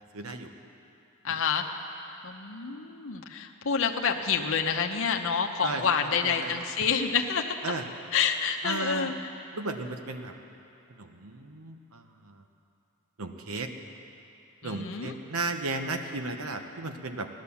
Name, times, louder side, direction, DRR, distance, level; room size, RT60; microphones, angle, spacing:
voice 1, 0.1-0.5 1.3-1.4 5.6-6.6 7.6-7.9 8.6-9.1 9.5-10.3 10.9-12.4 13.2-13.7 14.6-17.3, right 3 dB, 85° right, 6 dB, 1.0 m, -35 dB
voice 2, 1.2-1.6 2.2-7.5 8.1-9.1 14.6-15.1, left 6 dB, 65° left, 3 dB, 0.9 m, -28 dB
15.5 x 11.5 x 7.1 m, 2.8 s
head